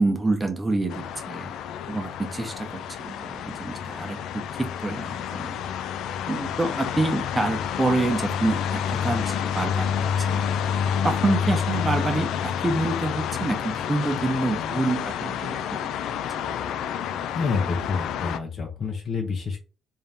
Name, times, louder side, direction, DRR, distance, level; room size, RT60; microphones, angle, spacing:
voice 1, 0.0-1.5 1.9-5.6 6.3-10.5 11.0-15.6 16.4-16.5, right 2 dB, 15° right, 4 dB, 0.9 m, -27 dB
sound 1, 0.9-18.4, left 8 dB, 85° left, 0.4 m, -29 dB
voice 2, 17.3-19.6, left 4 dB, 45° left, 0 dB, 0.8 m, -28 dB
3.6 x 2.7 x 3.5 m, 0.34 s
cardioid pair, 125°, 0 cm